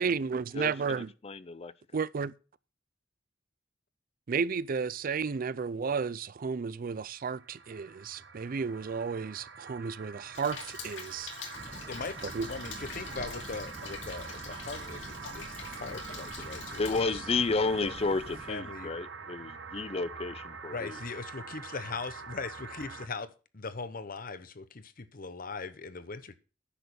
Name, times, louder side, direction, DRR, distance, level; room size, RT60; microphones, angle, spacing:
voice 1, 0.0-1.1 1.9-2.3 4.3-11.3 12.2-12.5, right 5 dB, 50° right, 0.4 m, -33 dB
voice 2, 0.5-1.7 16.8-21.0, left 3 dB, 35° left, 0.5 m, -32 dB
sound 1, 7.1-23.1, right 5 dB, 70° right, 1.3 m, -45 dB
Rain, 10.3-17.0, left 5 dB, 75° left, 2.5 m, -45 dB
sound 2, 11.5-18.6, right 1 dB, 35° right, 1.0 m, -48 dB
voice 3, 11.9-16.8 17.1-17.2 17.6-18.1 18.5-18.9 20.7-26.4, left 4 dB, 50° left, 0.9 m, -40 dB
10.0 x 6.8 x 6.8 m
head